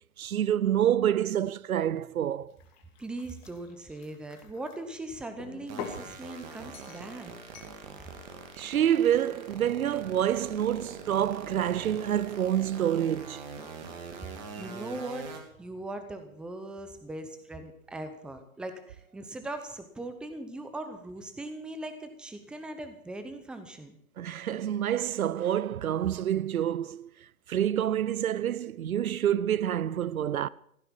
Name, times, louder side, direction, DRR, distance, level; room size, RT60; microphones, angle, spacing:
voice 1, 0.2-2.6 8.6-13.4 14.5-14.6 24.2-27.1 27.5-30.5, right 10 dB, 85° right, 0.6 m, -27 dB
sound 1, 2.5-4.8 5.4-6.1 6.7-7.1 7.5-7.8, left 8 dB, 30° left, 2.0 m, -44 dB
voice 2, 3.0-7.3 14.6-15.2 15.6-24.0, right 2 dB, ahead, 0.7 m, -40 dB
sound 2, 5.7-15.4, right 5 dB, 30° right, 2.7 m, -43 dB
15.5 x 9.9 x 7.2 m
hypercardioid pair, 135°, 41 cm